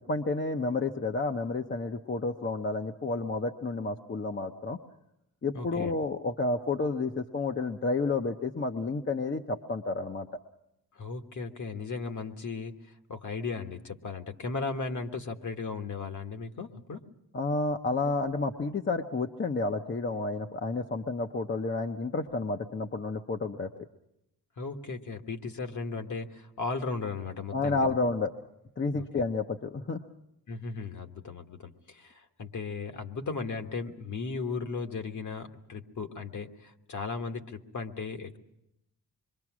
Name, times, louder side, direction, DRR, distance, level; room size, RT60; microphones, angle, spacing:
voice 1, 0.0-4.8 5.4-10.3 17.3-23.7 27.5-28.3 28.8-30.0, left 3 dB, 30° left, 4 dB, 0.8 m, -30 dB
voice 2, 5.5-5.9 10.9-17.0 24.6-28.0 28.9-29.2 30.5-38.4, left 4 dB, 50° left, 6 dB, 1.5 m, -36 dB
26.0 x 23.0 x 6.1 m, 0.84 s
cardioid pair, 100°, 37 cm